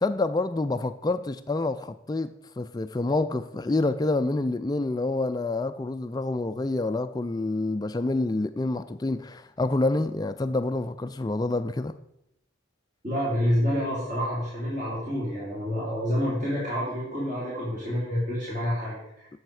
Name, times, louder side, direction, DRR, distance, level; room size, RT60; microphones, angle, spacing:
voice 1, 0.0-12.0, left 2 dB, 20° left, 0.3 m, -27 dB
voice 2, 13.0-19.3, equal, 40° right, 3.4 m, -28 dB
11.0 x 7.2 x 4.8 m
head